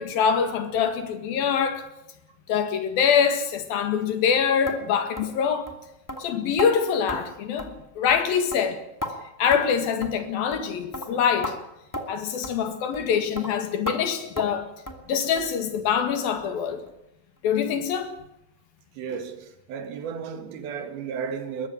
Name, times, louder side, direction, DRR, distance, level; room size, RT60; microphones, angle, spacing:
voice 1, 0.0-1.9 2.5-5.7 6.2-8.8 9.4-11.6 12.1-14.7 15.1-16.8 17.4-18.1, left 7 dB, 70° left, 3.7 m, -24 dB
sound 1, 4.7-4.8 5.2-5.3 5.7-5.8 6.1-6.2 6.6-6.7 7.1-7.2 7.6-7.8 8.1-8.2 8.5-9.1 9.5-9.7 10.0-10.2 10.5-10.7 10.9-11.1 11.4-11.6 11.9-12.1 12.4-12.6 12.9-13.1 13.4-13.5 13.9-14.0 14.4-14.6 14.9-15.0 15.4-15.5 15.9-16.0 16.4-16.5 16.9-17.0, equal, 5° left, 1.5 m, -33 dB
voice 2, 19.0-21.7, right 6 dB, 80° right, 3.8 m, -34 dB
21.5 x 14.5 x 9.6 m
omnidirectional pair, 4.4 m